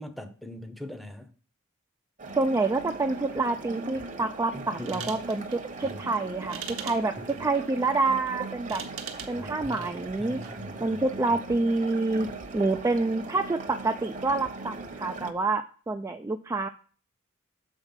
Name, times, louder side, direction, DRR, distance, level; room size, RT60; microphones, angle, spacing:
voice 1, 0.0-1.3 4.5-5.1 5.8-6.0 9.3-9.9 10.2-11.0, left 1 dB, ahead, 0.7 m, -41 dB
sound 1, 2.2-15.3, right 3 dB, 35° right, 0.9 m, -39 dB
voice 2, 2.3-8.8 9.3-10.4 10.8-12.3 12.5-16.7, right 3 dB, 15° right, 0.3 m, -27 dB
sound 2, 4.7-10.7, right 7 dB, 65° right, 1.0 m, -44 dB
7.3 x 4.4 x 5.6 m
head